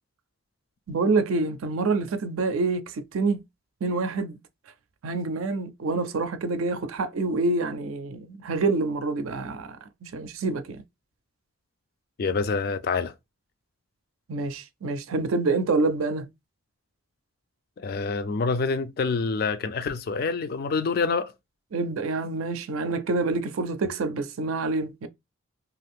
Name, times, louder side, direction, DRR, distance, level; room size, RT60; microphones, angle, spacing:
voice 1, 0.9-3.4 3.8-4.4 5.0-10.8 14.3-16.3 21.7-25.1, right 3 dB, 85° right, 0.5 m, -27 dB
voice 2, 12.2-13.1 17.8-21.3, left 4 dB, 45° left, 0.3 m, -26 dB
2.6 x 2.4 x 3.3 m
head